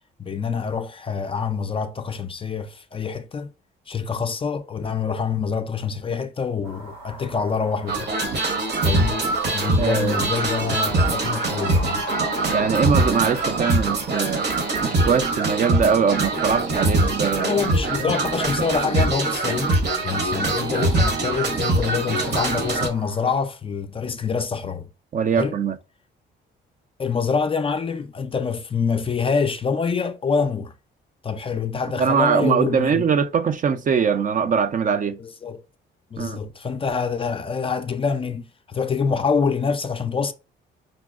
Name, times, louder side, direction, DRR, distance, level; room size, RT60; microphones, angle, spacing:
voice 1, 0.2-3.5 3.9-8.1 8.8-9.2 9.5-12.1 17.3-24.9 25.3-25.6 27.0-30.7 31.2-33.0 35.2-35.6 36.1-40.3, left 5 dB, 30° left, 0.3 m, -26 dB
sound 1, 6.6-23.3, right 1 dB, 85° right, 2.0 m, -39 dB
sound 2, 7.9-22.9, right 2 dB, 55° right, 0.9 m, -23 dB
voice 2, 9.8-10.1 12.5-14.4 14.8-17.6 25.1-25.8 32.0-35.2 36.2-36.4, right 6 dB, 40° right, 0.4 m, -22 dB
5.1 x 2.0 x 2.3 m
cardioid pair, 90°, 20 cm